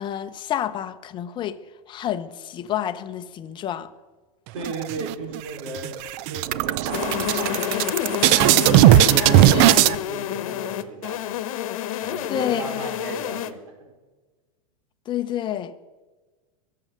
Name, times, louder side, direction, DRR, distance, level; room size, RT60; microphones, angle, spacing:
voice 1, 0.0-1.6 1.9-3.9 12.3-12.9 15.1-15.7, left 10 dB, 25° left, 0.8 m, -29 dB
voice 2, 4.5-6.0 6.3-9.3 9.6-11.4 12.0-13.9, right 3 dB, 65° right, 4.8 m, -36 dB
sound 1, 4.6-5.4 5.7-5.9 6.2-9.9, right 14 dB, 45° right, 0.6 m, -17 dB
sound 2, 6.9-13.5, left 11 dB, 70° left, 1.1 m, -28 dB
22.5 x 7.7 x 6.6 m
supercardioid pair, 140°, 18 cm